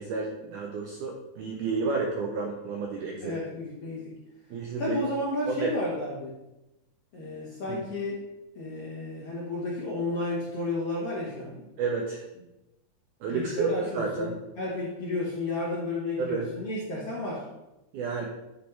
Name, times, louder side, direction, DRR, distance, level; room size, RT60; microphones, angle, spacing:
voice 1, 0.0-3.4 4.5-5.0 5.5-5.8 7.7-7.8 11.8-12.2 13.2-14.4 16.2-16.5 17.9-18.3, right 4 dB, 85° right, 1 dB, 1.8 m, -31 dB
voice 2, 3.2-4.1 4.8-6.4 7.1-8.2 8.5-11.7 13.3-17.5, left 2 dB, 55° left, -7 dB, 1.6 m, -32 dB
9.2 x 3.5 x 4.4 m, 0.97 s
omnidirectional pair, 4.4 m